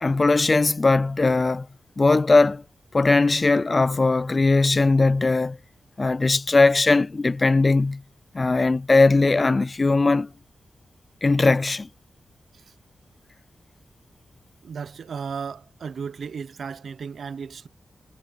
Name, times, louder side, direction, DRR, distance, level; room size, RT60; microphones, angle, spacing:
voice 1, 0.0-1.7 2.0-2.6 2.9-5.6 6.0-8.0 8.3-10.3 11.2-11.9, left 3 dB, 30° left, 0.3 m, -19 dB
voice 2, 14.6-17.7, right 6 dB, 65° right, 0.9 m, -35 dB
wide cardioid pair, 135°, 0 cm